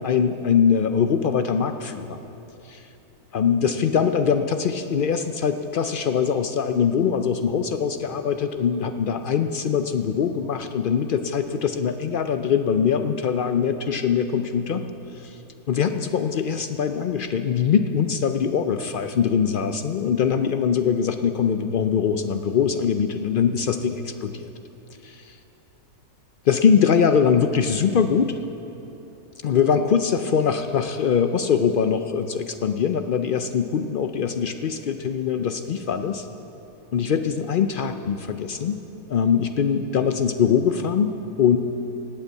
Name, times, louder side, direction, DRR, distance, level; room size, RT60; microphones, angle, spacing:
voice 1, 0.0-2.2 2.7-2.8 3.3-14.8 15.1-15.4 15.7-24.5 25.0-25.4 26.5-28.4 29.4-36.3 36.9-38.8 39.1-41.6, left 7 dB, 80° left, 8 dB, 0.4 m, -22 dB
17.5 x 8.2 x 8.0 m, 2.9 s
omnidirectional pair, 1.6 m